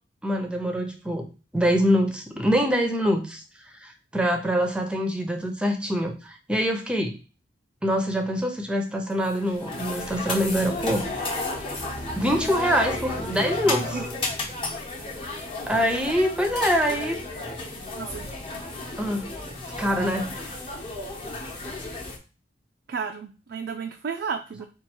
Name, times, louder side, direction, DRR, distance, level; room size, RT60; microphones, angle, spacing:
voice 1, 0.2-1.3 1.5-3.4 3.8-7.2 7.8-11.1 12.2-14.0 15.7-17.2 19.0-19.3 19.8-20.3, equal, 5° right, 4 dB, 0.6 m, -24 dB
sound 1, 9.2-22.2, left 2 dB, 30° left, 0.9 m, -33 dB
voice 2, 13.7-14.1 17.9-18.4 22.9-24.6, right 6 dB, 60° right, 4 dB, 0.4 m, -33 dB
4.4 x 2.4 x 4.4 m, 0.33 s
head